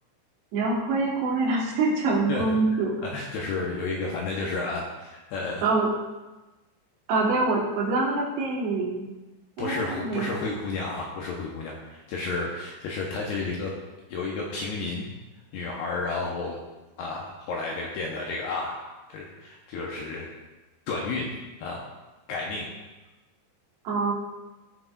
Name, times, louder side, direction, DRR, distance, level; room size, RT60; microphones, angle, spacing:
voice 1, 0.5-2.9 5.6-5.9 7.1-9.1 9.6-10.3 23.8-24.1, right 3 dB, 70° right, -3 dB, 3.2 m, -25 dB
voice 2, 2.3-5.6 9.6-13.7 14.1-15.1 15.5-16.6 17.0-18.8 19.1-20.3 20.9-21.3 21.6-21.8 22.3-22.7, left 3 dB, 80° left, -2 dB, 2.5 m, -32 dB
15.5 x 5.9 x 2.4 m, 1.1 s
omnidirectional pair, 5.4 m